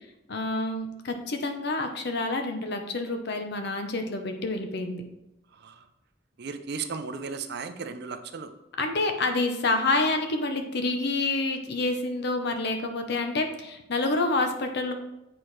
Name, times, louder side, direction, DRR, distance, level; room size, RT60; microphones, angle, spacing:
voice 1, 0.3-5.0 8.8-14.9, left 2 dB, 60° left, 5 dB, 0.8 m, -28 dB
voice 2, 6.4-8.5, right 5 dB, 55° right, 9 dB, 0.5 m, -35 dB
8.0 x 4.4 x 3.2 m, 0.89 s
head